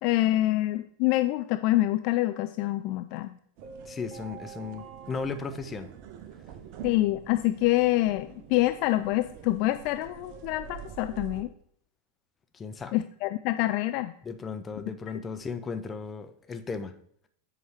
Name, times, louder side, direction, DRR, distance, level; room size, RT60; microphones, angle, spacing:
voice 1, 0.0-3.3 6.8-11.5 12.9-14.1, left 16 dB, 45° left, 10 dB, 0.3 m, -26 dB
sound 1, 3.6-11.4, right 7 dB, 45° right, 0.7 m, -45 dB
voice 2, 3.9-5.9 12.5-13.0 14.2-17.0, left 5 dB, 20° left, 9 dB, 0.7 m, -36 dB
7.7 x 4.8 x 4.7 m, 0.65 s
figure-of-eight pair, 90°, 0 cm